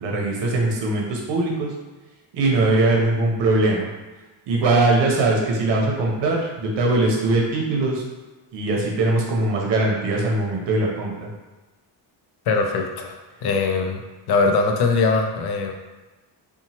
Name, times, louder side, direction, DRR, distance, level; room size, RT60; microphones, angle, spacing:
voice 1, 0.0-1.7 2.3-3.9 4.5-8.0 8.5-11.3, right 2 dB, 70° right, -1 dB, 0.8 m, -21 dB
voice 2, 12.5-14.0 14.3-15.7, left 4 dB, 60° left, 4 dB, 0.5 m, -21 dB
2.8 x 2.3 x 2.8 m, 1.2 s
cardioid pair, 110°, 45 cm